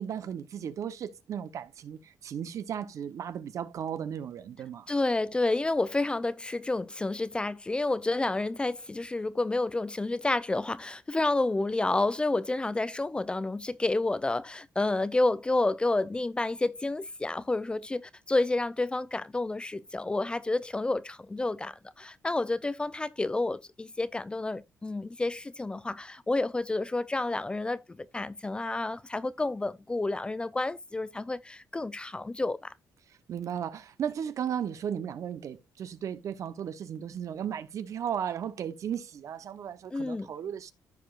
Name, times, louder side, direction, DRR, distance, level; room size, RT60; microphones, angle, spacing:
voice 1, 0.0-4.9 33.3-40.7, right 8 dB, 60° right, 0.9 m, -35 dB
voice 2, 4.9-32.7 39.9-40.3, left 2 dB, 15° left, 0.4 m, -30 dB
14.5 x 4.9 x 2.4 m
cardioid pair, 115°, 6 cm